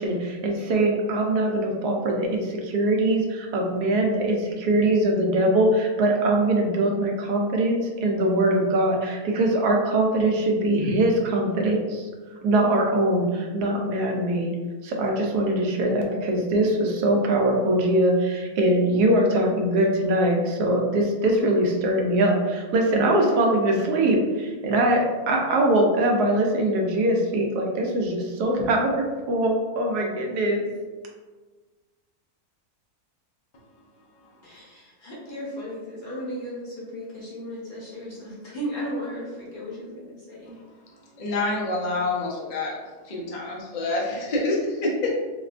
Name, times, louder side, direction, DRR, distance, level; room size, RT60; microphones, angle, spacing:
voice 1, 0.0-12.1 12.4-14.5 14.8-30.6, right 1 dB, 90° right, 1 dB, 1.2 m, -22 dB
voice 2, 34.4-40.5, equal, 40° left, -7 dB, 0.8 m, -35 dB
voice 3, 41.2-42.8 43.0-45.2, left 2 dB, 65° left, -3 dB, 0.4 m, -27 dB
4.0 x 2.2 x 2.4 m, 1.3 s
omnidirectional pair, 1.6 m